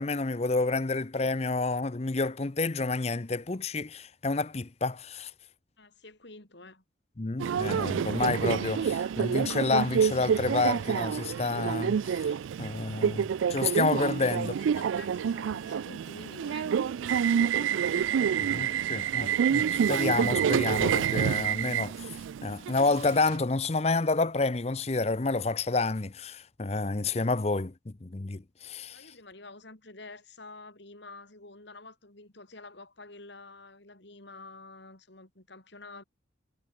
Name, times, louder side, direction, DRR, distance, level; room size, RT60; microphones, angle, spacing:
voice 1, 0.0-5.3 7.2-12.3 12.6-14.5 18.5-22.1 22.4-29.0, left 3 dB, 30° left, 0.7 m, -29 dB
voice 2, 5.8-6.8 14.2-18.2 28.9-36.0, left 3 dB, 65° left, 3.3 m, -48 dB
Subway metro underground, 7.4-23.4, right 8 dB, 80° right, 0.3 m, -28 dB
head